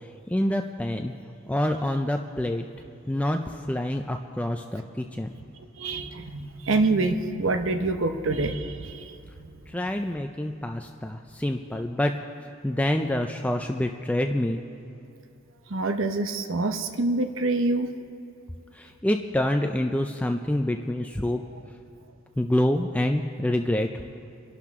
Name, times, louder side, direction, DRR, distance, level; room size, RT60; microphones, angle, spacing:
voice 1, 0.3-1.1 1.5-2.6 3.1-5.3 9.7-12.1 12.6-14.6 18.7-21.4 22.4-23.9, left 1 dB, 5° left, 4 dB, 0.4 m, -26 dB
voice 2, 5.8-9.1 15.7-17.9, right 2 dB, 65° right, 7 dB, 0.9 m, -26 dB
27.5 x 11.5 x 3.7 m, 2.6 s
head